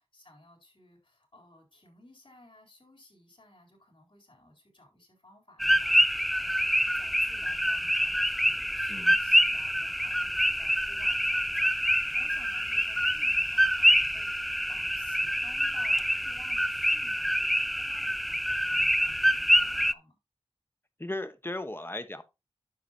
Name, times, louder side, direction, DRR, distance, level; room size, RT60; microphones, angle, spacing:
voice 1, 0.1-20.2, left 1 dB, 50° left, 4.0 m, -57 dB
sound 1, 5.6-19.9, equal, ahead, 0.4 m, -26 dB
voice 2, 21.0-22.2, left 1 dB, 20° left, 1.2 m, -36 dB
9.9 x 7.0 x 2.9 m
wide cardioid pair, 45°, 11 cm